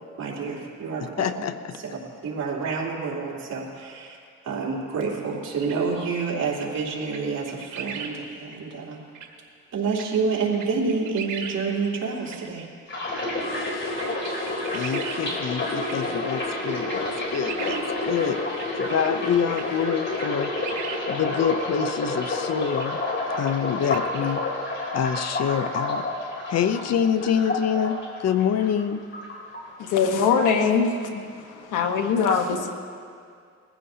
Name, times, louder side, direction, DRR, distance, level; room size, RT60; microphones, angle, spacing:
voice 1, 0.2-1.5 1.8-4.2 4.4-9.0 9.7-12.7, right 4 dB, 60° right, -3 dB, 3.4 m, -28 dB
voice 2, 1.2-1.8 13.5-14.0 14.3-18.4 18.8-20.5 21.1-23.0 23.3-24.4 24.9-26.1 26.5-29.0, left 8 dB, 55° left, 11 dB, 0.7 m, -26 dB
sound 1, 5.6-5.8 6.5-6.7 7.1-7.2 7.5-8.1 8.5-8.6 9.1-9.3 9.9-10.1 10.5-11.6 11.9-12.0 12.3-12.4 13.1-13.2 13.9-15.2 15.6-16.0 16.3-16.5 16.8-17.8 18.5-18.7 19.0-19.1 19.5-19.6 20.1-21.0 21.5-21.6 22.7-22.9 23.4-23.5 23.8-24.2, right 7 dB, 85° right, 1.6 m, -37 dB
sound 2, 12.9-28.8 29.1-30.0 30.3-30.7, left 2 dB, 40° left, 3.4 m, -29 dB
voice 3, 29.8-31.2 31.7-32.7, left 6 dB, 80° left, 5 dB, 1.3 m, -22 dB
22.0 x 15.0 x 2.8 m, 2.2 s
cardioid pair, 90°, 30 cm